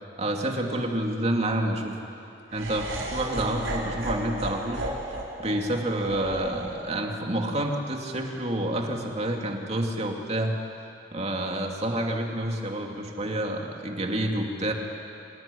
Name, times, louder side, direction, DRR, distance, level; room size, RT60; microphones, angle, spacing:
voice 1, 0.2-1.9 2.5-4.8 5.4-10.6 11.1-14.7, right 1 dB, 35° right, 2 dB, 2.5 m, -28 dB
Laughter, 2.5-8.7, right 1 dB, 80° right, 4.8 m, -35 dB
27.0 x 17.0 x 10.0 m, 2.6 s
head